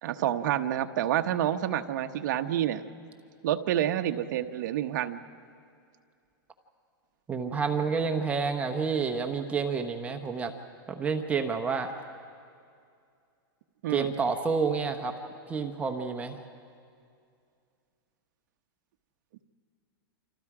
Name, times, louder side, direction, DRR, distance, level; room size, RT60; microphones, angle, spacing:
voice 1, 0.0-2.8 3.4-5.2 13.8-14.1, right 11 dB, 50° right, 7 dB, 1.1 m, -28 dB
voice 2, 7.3-10.5 10.9-11.9 13.9-15.2 15.5-16.4, right 5 dB, 10° right, 5 dB, 0.9 m, -29 dB
29.0 x 26.5 x 4.9 m, 2.4 s
supercardioid pair, 160°, 12 cm